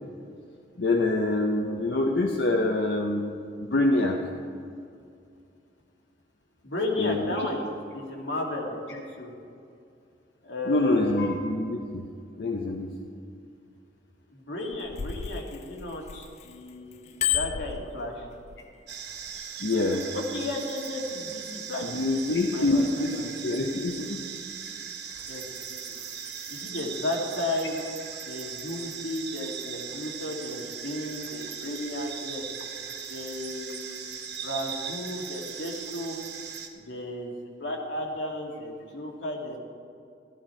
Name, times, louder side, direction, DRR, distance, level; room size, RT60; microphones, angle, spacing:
voice 1, 0.8-4.2 7.0-7.5 10.7-12.1 12.4-13.0 19.6-20.1 21.8-24.2, left 2 dB, 70° left, 2 dB, 0.8 m, -26 dB
voice 2, 6.6-7.7 7.9-9.3 10.4-11.3 14.3-18.2 20.1-23.2 25.3-25.4 25.7-25.8 26.5-27.8 28.2-32.4 33.1-33.9 34.4-36.2 36.7-37.3 37.6-39.6, left 1 dB, 85° left, 0 dB, 2.1 m, -34 dB
Bicycle bell, 14.6-16.5 16.9-18.6 19.2-19.4, left 9 dB, 40° left, 0.4 m, -31 dB
sound 1, 18.9-36.7, right 7 dB, 65° right, 1.2 m, -39 dB
14.0 x 12.0 x 4.4 m, 2.4 s
head